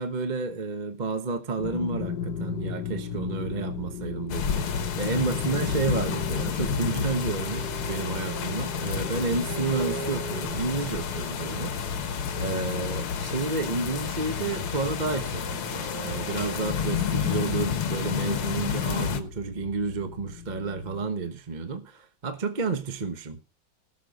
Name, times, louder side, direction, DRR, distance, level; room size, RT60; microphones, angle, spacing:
voice 1, 0.0-12.0 12.4-23.4, right 4 dB, 30° right, 0.8 m, -31 dB
sound 1, 1.6-21.1, left 6 dB, 55° left, 1.7 m, -38 dB
sound 2, 4.1-18.8, right 6 dB, 50° right, 3.7 m, -42 dB
sound 3, 4.3-19.2, left 7 dB, 75° left, 2.2 m, -30 dB
19.0 x 6.4 x 5.2 m
omnidirectional pair, 2.3 m